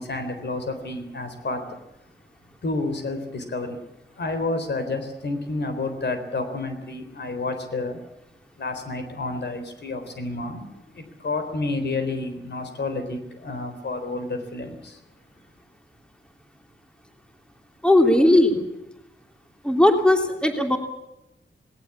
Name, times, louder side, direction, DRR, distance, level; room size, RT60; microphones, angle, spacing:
voice 1, 0.0-1.8 2.6-3.8 4.1-8.0 8.6-15.0, left 2 dB, 70° left, 3.9 m, -30 dB
voice 2, 17.8-18.6 19.6-20.8, left 1 dB, 5° left, 2.9 m, -17 dB
18.5 x 18.0 x 8.6 m
wide cardioid pair, 95°, 19 cm